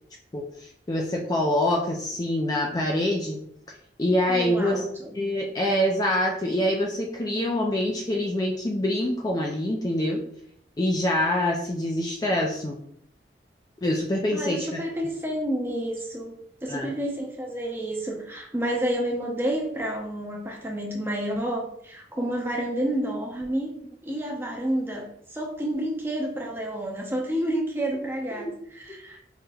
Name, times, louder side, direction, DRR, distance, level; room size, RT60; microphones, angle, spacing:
voice 1, 0.3-3.4 4.0-4.8 5.1-10.2 10.8-12.8 13.8-14.8 16.7-16.9 28.4-28.5, left 1 dB, 20° left, 0 dB, 0.4 m, -25 dB
voice 2, 4.3-5.1 14.3-16.3 16.6-23.7 24.0-29.3, right 1 dB, 15° right, -1 dB, 0.7 m, -30 dB
4.7 x 3.0 x 2.3 m, 0.67 s
head